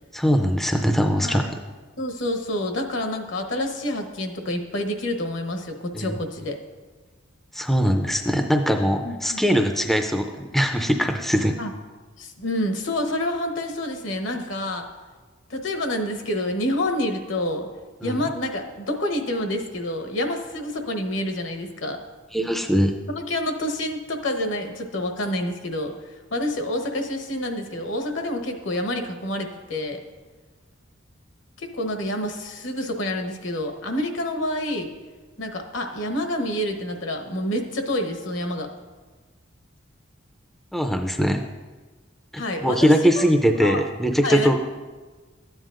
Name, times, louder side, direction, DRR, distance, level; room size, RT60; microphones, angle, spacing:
voice 1, 0.1-1.4 5.9-6.2 7.5-11.6 18.0-18.2 22.3-22.9 40.7-41.4 42.3-44.6, equal, ahead, 3 dB, 0.4 m, -21 dB
voice 2, 2.0-6.6 9.0-9.4 11.6-11.7 12.2-14.9 15.5-17.7 18.0-22.0 23.1-26.0 26.3-30.0 31.6-34.9 35.4-38.7 42.4-43.2 43.6-43.8 44.2-44.6, left 1 dB, 70° left, 4 dB, 1.0 m, -28 dB
13.0 x 9.1 x 2.5 m, 1.3 s
head